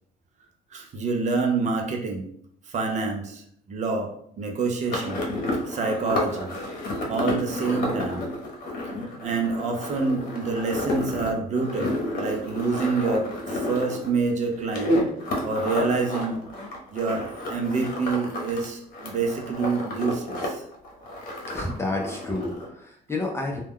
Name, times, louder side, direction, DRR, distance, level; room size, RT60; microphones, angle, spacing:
voice 1, 0.7-2.3 2.7-3.4 3.7-5.2 5.7-6.6 7.1-8.2 8.8-8.9 9.2-15.0 15.4-16.4 16.9-20.6, right 4 dB, 45° right, 3 dB, 0.6 m, -27 dB
sound 1, 4.9-18.6 18.9-20.5 20.7-22.7, left 1 dB, 60° left, 0.9 m, -30 dB
voice 2, 21.5-23.6, left 2 dB, 15° left, -1 dB, 0.5 m, -30 dB
2.3 x 2.1 x 3.5 m, 0.66 s
cardioid pair, 110°, 17 cm